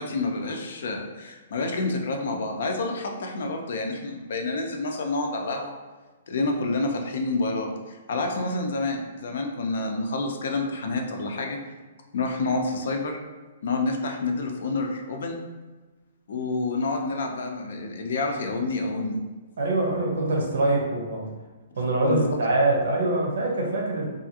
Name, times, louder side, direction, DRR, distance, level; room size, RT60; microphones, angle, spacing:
voice 1, 0.0-5.7 6.3-11.6 12.1-13.2 13.6-15.4 16.3-19.2 22.1-22.3, left 3 dB, 65° left, 3 dB, 0.4 m, -28 dB
voice 2, 19.6-21.2 21.8-24.1, right 2 dB, 80° right, 0 dB, 0.8 m, -24 dB
2.7 x 2.4 x 2.7 m, 1.3 s
hypercardioid pair, 170°, 0 cm